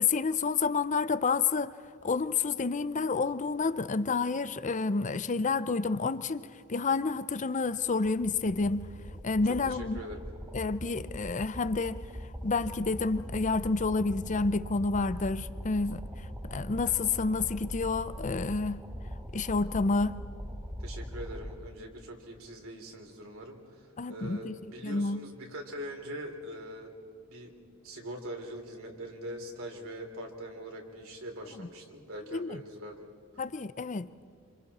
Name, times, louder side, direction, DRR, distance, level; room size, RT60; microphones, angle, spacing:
voice 1, 0.0-1.8 2.0-8.9 9.2-10.0 10.5-12.0 12.4-16.0 16.4-18.8 19.3-20.1 24.0-24.5 24.8-25.2 31.6-31.7 32.3-32.6 33.4-34.1, left 4 dB, 35° left, 0.6 m, -29 dB
sound 1, 7.8-21.6, equal, 15° right, 2.5 m, -41 dB
voice 2, 9.4-10.2 20.8-26.9 27.3-27.5 27.8-33.1, equal, 75° right, 3.5 m, -42 dB
27.5 x 27.0 x 4.3 m
head